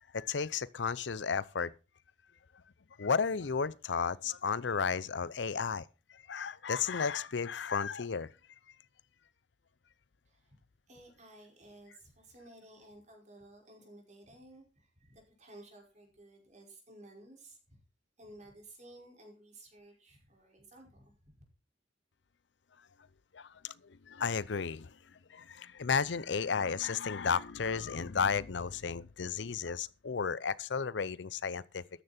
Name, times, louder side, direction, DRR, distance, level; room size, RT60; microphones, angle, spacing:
voice 1, 0.1-1.7 3.0-8.3 23.3-25.0 25.3-31.8, left 6 dB, 75° left, 0.6 m, -33 dB
voice 2, 10.2-10.6 10.9-17.8 18.2-21.4, right 1 dB, 40° right, 5.1 m, -55 dB
13.5 x 10.0 x 4.3 m
head